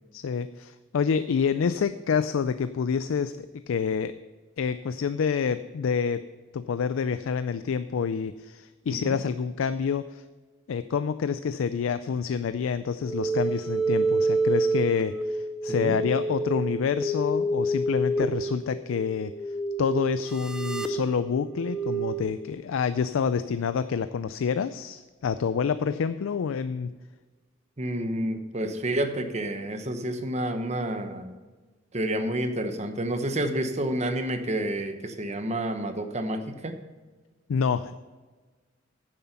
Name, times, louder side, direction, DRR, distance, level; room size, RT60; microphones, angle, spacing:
voice 1, 0.1-4.1 4.6-6.3 6.5-10.2 10.7-19.3 19.8-26.9 37.5-37.9, left 6 dB, 80° left, 13 dB, 0.4 m, -27 dB
sound 1, 13.0-22.2, right 2 dB, 5° right, 0.6 m, -28 dB
voice 2, 27.8-31.3 31.9-36.7, right 1 dB, 35° right, 7 dB, 1.0 m, -29 dB
9.8 x 7.4 x 5.7 m, 1.3 s
head